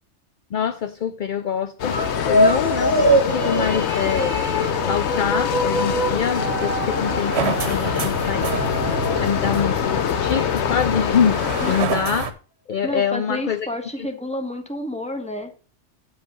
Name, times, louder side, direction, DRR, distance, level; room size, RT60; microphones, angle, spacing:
voice 1, 0.5-2.0 2.3-4.3 4.7-8.8 9.2-12.3 12.7-13.7 14.0-14.1, left 7 dB, 55° left, 11 dB, 0.6 m, -25 dB
sound 1, 1.8-11.9, left 8 dB, 70° left, 1.0 m, -25 dB
sound 2, 1.8-10.3, right 1 dB, 40° left, 1.7 m, -24 dB
sound 3, 3.3-12.3, right 6 dB, 65° right, 1.2 m, -31 dB
voice 2, 12.8-15.5, left 1 dB, 5° left, 4 dB, 1.3 m, -30 dB
8.9 x 5.3 x 5.3 m, 0.37 s
omnidirectional pair, 1.2 m